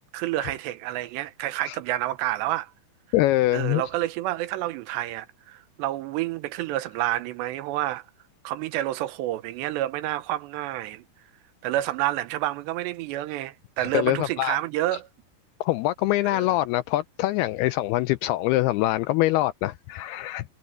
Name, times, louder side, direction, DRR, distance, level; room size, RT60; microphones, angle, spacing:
voice 1, 0.1-2.7 3.5-8.0 8.4-11.0 11.6-15.1 16.2-16.5, right 15 dB, 85° right, 3.1 m, -29 dB
voice 2, 3.1-3.8 13.8-14.6 15.6-20.4, left 16 dB, 80° left, 2.3 m, -24 dB
omnidirectional pair, 4.9 m